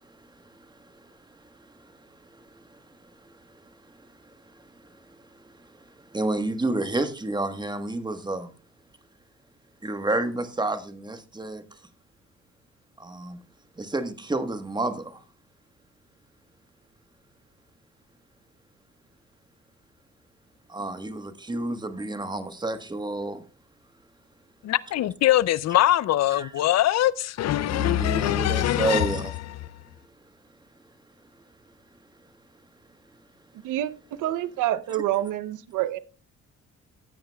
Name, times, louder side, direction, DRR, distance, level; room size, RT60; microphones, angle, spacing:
voice 1, 0.0-8.5 9.8-11.6 13.0-13.4 13.8-15.2 20.7-23.4 26.3-26.5 27.6-29.3, right 2 dB, 15° right, 1.3 m, -31 dB
voice 2, 24.6-29.2, left 13 dB, 60° left, 0.5 m, -22 dB
voice 3, 34.2-36.0, right 13 dB, 85° right, 0.7 m, -27 dB
15.0 x 8.7 x 2.3 m
cardioid pair, 90°, 30 cm